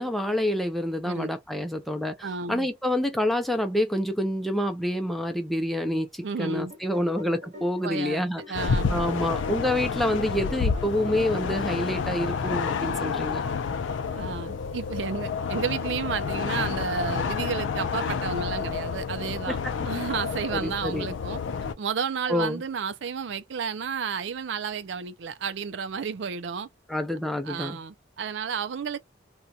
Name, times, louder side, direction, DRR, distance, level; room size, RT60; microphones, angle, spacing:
voice 1, 0.0-2.2 2.5-8.6 8.9-13.4 19.5-19.6 20.5-21.1 22.3-22.6 26.9-27.8, left 1 dB, ahead, 0.4 m, -27 dB
voice 2, 2.2-2.7 6.2-6.7 7.8-8.2 8.5-9.1 14.1-19.6 19.8-21.4 21.8-26.7 27.4-29.0, right 6 dB, 75° right, 0.4 m, -32 dB
sound 1, 6.2-13.8, left 1 dB, 40° right, 0.9 m, -47 dB
sound 2, 8.5-21.7, left 5 dB, 85° left, 0.4 m, -29 dB
2.8 x 2.2 x 2.3 m
head